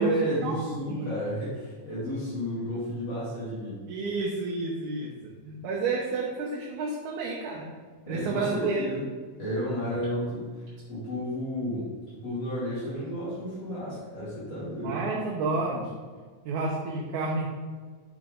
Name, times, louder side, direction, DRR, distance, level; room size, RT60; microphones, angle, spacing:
voice 1, 0.0-3.8 8.1-9.0 9.4-11.9 12.2-15.0, equal, 60° left, -12 dB, 3.7 m, -32 dB
voice 2, 3.9-7.7 8.1-8.8 14.8-15.9 16.5-17.4, right 3 dB, 80° right, -3 dB, 2.3 m, -30 dB
7.7 x 5.7 x 3.8 m, 1.5 s
omnidirectional pair, 3.4 m